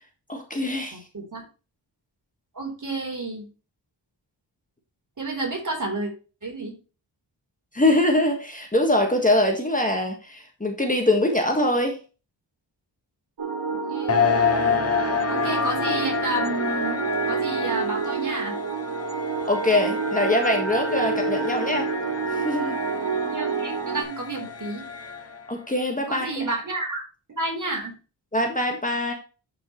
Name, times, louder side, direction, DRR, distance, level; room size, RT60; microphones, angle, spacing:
voice 1, 0.3-1.0 7.7-12.0 19.5-21.9 22.3-22.8 25.5-26.5 28.3-29.1, left 1 dB, 20° left, 3 dB, 1.6 m, -23 dB
voice 2, 0.9-1.4 2.5-3.5 5.2-6.1 6.4-6.7 13.9-14.2 15.3-17.0 17.3-18.6 23.3-24.9 26.1-27.0 27.3-27.9, right 2 dB, 40° right, 1 dB, 3.9 m, -30 dB
sound 1, 13.4-24.0, right 6 dB, 65° right, 3.0 m, -29 dB
sound 2, 14.1-25.5, left 6 dB, 35° left, 1.0 m, -28 dB
12.0 x 5.6 x 3.1 m, 0.33 s
wide cardioid pair, 145°, 45 cm